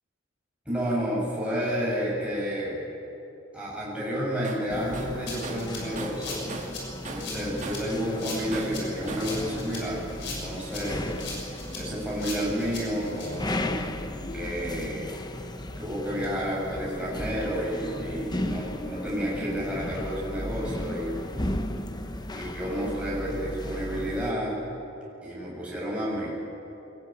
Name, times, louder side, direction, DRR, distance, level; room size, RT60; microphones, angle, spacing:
voice 1, 0.7-2.9 3.5-6.5 7.0-13.9 14.3-15.1 15.8-21.2 22.3-24.6 25.2-26.4, equal, 5° right, -6 dB, 7.8 m, -31 dB
Tools, 4.4-4.7 4.9-6.8 7.0-8.0 8.5-9.4, right 3 dB, 40° right, 2.2 m, -39 dB
sound 1, 4.7-24.3, left 1 dB, 20° left, 1.0 m, -35 dB
Rattle (instrument), 5.3-13.3, left 3 dB, 60° left, 6.5 m, -39 dB
24.0 x 20.5 x 9.4 m, 3.0 s
head